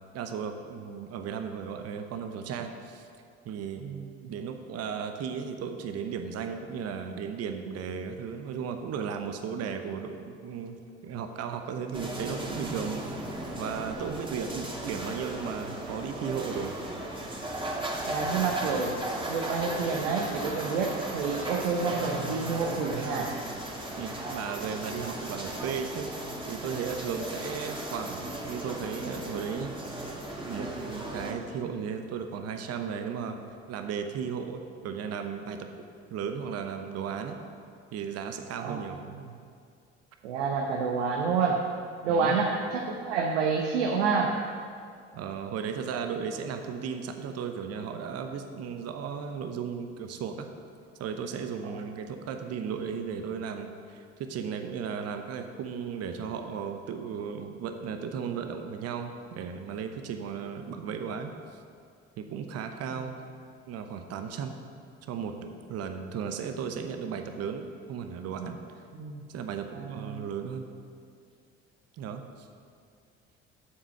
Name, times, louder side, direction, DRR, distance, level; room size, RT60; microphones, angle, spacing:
voice 1, 0.1-3.0 3.4-3.8 4.3-10.8 11.0-13.0 13.6-16.8 24.0-26.1 26.5-29.7 30.4-33.4 33.7-37.3 37.9-39.0 42.1-42.4 45.1-50.5 51.0-61.3 62.2-63.2 63.7-64.5 65.1-68.6 69.3-70.7 72.0-72.5, right 6 dB, 45° right, 6 dB, 0.9 m, -35 dB
sound 1, 11.9-31.3, right 1 dB, 15° right, 1.9 m, -36 dB
voice 2, 18.1-19.0 19.3-23.3 38.6-39.3 40.2-41.6 42.0-44.4 51.7-51.8 62.9-63.0 68.9-69.2 69.8-70.2, right 5 dB, 70° right, 0 dB, 0.9 m, -29 dB
8.5 x 7.4 x 5.9 m, 2.3 s
figure-of-eight pair, 55°, 35 cm